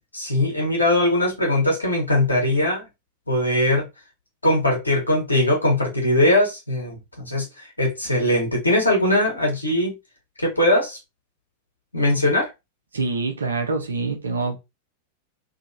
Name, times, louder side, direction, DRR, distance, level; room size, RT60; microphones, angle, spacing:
voice 1, 0.1-2.8 3.3-3.9 4.4-9.9 10.4-11.0 11.9-12.5, left 1 dB, 80° left, 1.2 m, -20 dB
voice 2, 12.9-14.6, right 3 dB, 75° right, 0.8 m, -25 dB
2.9 x 2.9 x 2.6 m
figure-of-eight pair, 90°, 0 cm